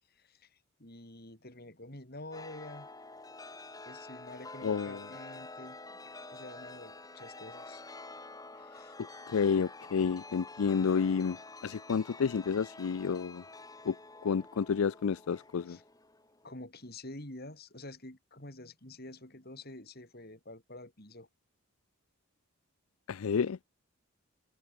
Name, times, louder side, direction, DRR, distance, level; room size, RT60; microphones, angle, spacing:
voice 1, 0.1-2.9 3.9-5.8 6.3-7.8 8.5-9.0 15.6-15.8 16.4-21.3, left 2 dB, 45° left, 3.8 m, -48 dB
Chime, 2.3-16.5, left 3 dB, 15° left, 5.0 m, -48 dB
voice 2, 4.6-5.1 9.3-11.4 11.6-13.4 13.8-14.0 14.2-15.8 23.1-23.6, left 6 dB, 80° left, 0.4 m, -30 dB
head